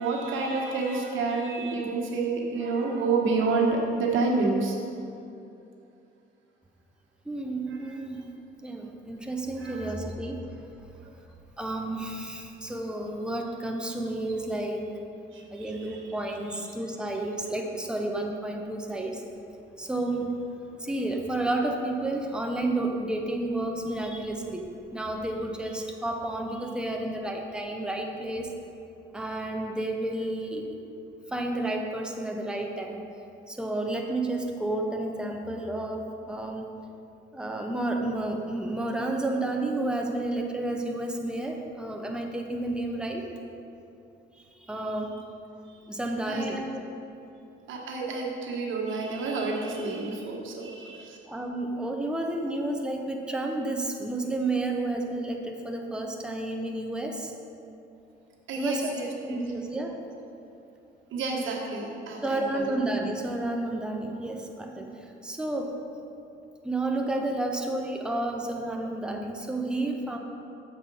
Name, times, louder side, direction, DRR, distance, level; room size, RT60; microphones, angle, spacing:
voice 1, 0.0-4.8 9.6-9.8 15.3-15.6 46.3-46.6 47.7-51.2 58.5-59.4 61.1-62.4, right 3 dB, 75° right, -1 dB, 1.3 m, -29 dB
voice 2, 7.2-8.2 8.6-10.5 11.6-14.9 15.5-19.2 19.8-20.4 20.8-28.5 29.1-30.7 31.3-33.0 33.5-36.7 37.3-43.3 44.4-45.2 45.9-46.6 51.3-57.3 58.5-60.0 62.2-65.8 66.6-70.2, right 2 dB, 5° right, 2 dB, 0.8 m, -31 dB
7.2 x 4.7 x 5.4 m, 2.7 s
cardioid pair, 90°, 20 cm